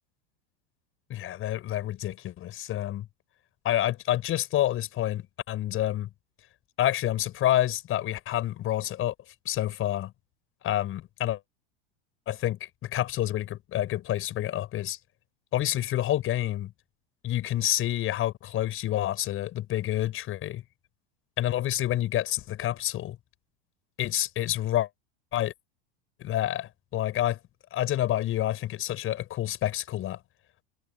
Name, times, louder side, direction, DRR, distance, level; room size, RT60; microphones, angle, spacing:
voice 1, 1.1-3.1 3.6-6.1 6.8-9.1 9.4-10.1 10.6-11.4 12.3-15.0 15.5-16.7 17.2-20.6 21.4-23.2 24.0-24.9 25.3-25.5 26.2-27.4 27.7-30.2, left 13 dB, 40° left, 6.3 m, -28 dB
hypercardioid pair, 105°, 31 cm